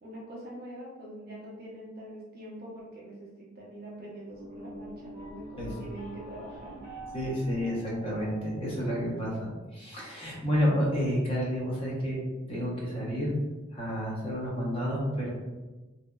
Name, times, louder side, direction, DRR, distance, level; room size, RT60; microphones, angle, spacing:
voice 1, 0.0-6.7, right 1 dB, 50° right, -4 dB, 0.7 m, -44 dB
sound 1, 4.3-9.4, right 1 dB, 60° left, 0.9 m, -46 dB
voice 2, 7.1-12.2 12.5-13.3 13.7-15.3, equal, 30° left, -4 dB, 0.6 m, -30 dB
2.7 x 2.2 x 2.2 m, 1.2 s
head